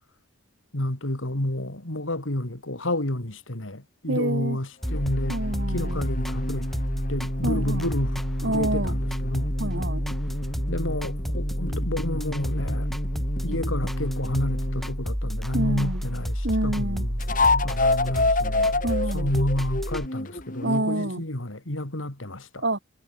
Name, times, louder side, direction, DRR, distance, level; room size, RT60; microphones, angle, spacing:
voice 1, 0.7-5.4 5.7-6.7 7.1-9.5 10.7-12.9 13.4-18.8 19.1-22.6, left 1 dB, 85° left, 3.3 m, -30 dB
voice 2, 4.1-4.6 5.3-6.0 7.4-7.9 8.4-8.9 9.6-10.0 13.5-13.6 15.5-16.0 16.4-17.1 18.8-19.3 20.6-21.2 22.6-22.8, right 1 dB, 60° right, 3.2 m, -27 dB
sound 1, 4.8-15.0 17.2-20.9, left 2 dB, 40° left, 5.0 m, -29 dB
sound 2, 4.8-20.1, equal, ahead, 5.0 m, -29 dB
head